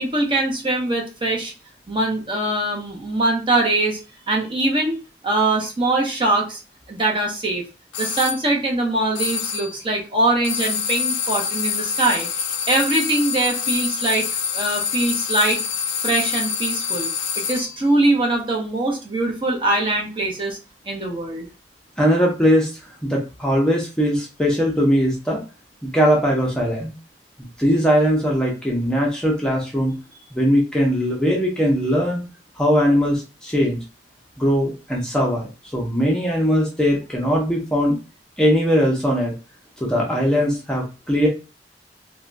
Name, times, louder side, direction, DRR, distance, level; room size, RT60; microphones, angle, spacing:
voice 1, 0.0-1.5 1.9-4.0 4.3-5.0 5.2-6.6 6.9-7.6 8.0-14.2 14.5-15.6 16.0-17.1 17.5-20.6 20.9-21.5, right 2 dB, 30° right, 0 dB, 0.8 m, -22 dB
sound 1, 7.9-8.4 9.1-9.8 10.4-17.8, left 6 dB, 85° left, 0.4 m, -26 dB
voice 2, 22.0-22.7 23.0-25.4 25.8-26.9 27.6-29.9 30.3-32.2 32.6-33.8 34.4-38.0 38.4-39.3 39.8-41.3, equal, 5° left, -2 dB, 0.6 m, -20 dB
3.4 x 2.2 x 2.5 m, 0.30 s
head